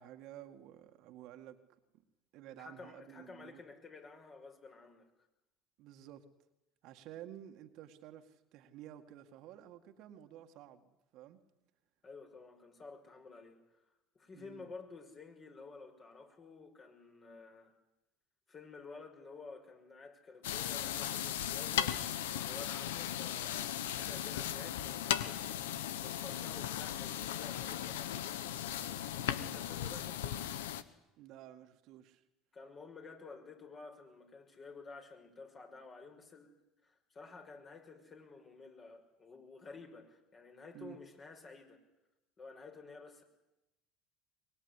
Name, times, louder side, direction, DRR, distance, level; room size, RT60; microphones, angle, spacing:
voice 1, 0.0-1.6 2.3-3.6 5.8-6.2 6.8-11.4 14.3-14.7 29.4-29.6 31.2-32.2 40.7-41.0, right 12 dB, 65° right, 6 dB, 2.0 m, -52 dB
voice 2, 2.6-5.1 12.0-13.8 14.1-17.7 18.5-22.0 22.3-25.7 26.0-28.6 29.2-30.5 32.5-36.5 36.8-41.8 42.4-43.2, left 4 dB, 35° left, 3 dB, 5.9 m, -52 dB
sound 1, 20.4-30.8, left 11 dB, 85° left, 1.1 m, -37 dB
23.5 x 20.5 x 9.9 m, 0.95 s
hypercardioid pair, 80°, 0 cm